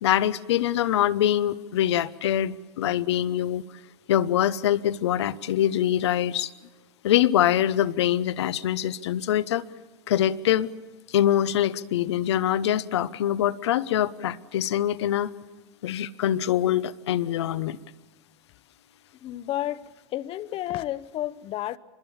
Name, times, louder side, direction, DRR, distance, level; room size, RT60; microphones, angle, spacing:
voice 1, 0.0-3.6 4.1-6.5 7.0-9.6 10.1-10.7 11.1-15.3 15.8-17.8, left 11 dB, 80° left, 0.9 m, -24 dB
voice 2, 19.2-19.8 20.1-21.8, left 14 dB, 40° left, 0.9 m, -31 dB
25.0 x 21.5 x 7.1 m
hypercardioid pair, 110°, 14 cm